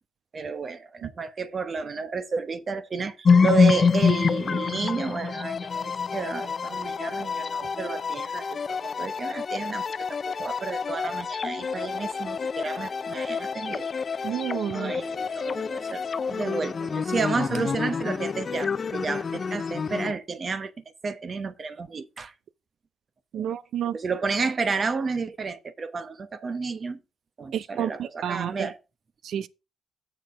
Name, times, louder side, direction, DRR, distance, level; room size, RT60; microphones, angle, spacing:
voice 1, 0.3-9.9 10.2-13.9 14.7-16.0 16.3-20.7 21.0-22.3 23.3-23.5 23.9-27.0 27.4-28.8, right 4 dB, 40° right, 1.0 m, -31 dB
sound 1, 3.2-20.1, left 5 dB, 40° left, 0.5 m, -27 dB
voice 2, 14.2-14.9 23.3-24.0 27.5-28.7 29.2-29.5, right 9 dB, 70° right, 0.6 m, -30 dB
7.6 x 6.4 x 4.8 m
cardioid pair, 90°, 0 cm